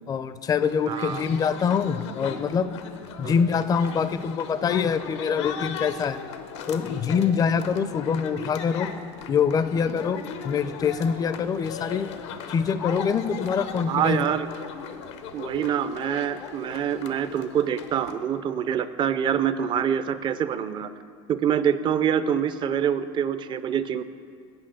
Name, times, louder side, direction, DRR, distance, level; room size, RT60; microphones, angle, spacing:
voice 1, 0.1-2.7 3.2-6.2 6.7-8.9 9.3-12.1 12.5-14.2, left 6 dB, 25° left, 13 dB, 0.4 m, -25 dB
sound 1, 0.6-18.1, left 7 dB, 85° left, 0.8 m, -38 dB
voice 2, 0.9-1.3 3.2-3.3 13.9-14.5 15.3-20.9 21.3-24.0, right 8 dB, 35° right, 13 dB, 0.4 m, -25 dB
8.9 x 5.6 x 7.6 m, 2.2 s
supercardioid pair, 115°, 15 cm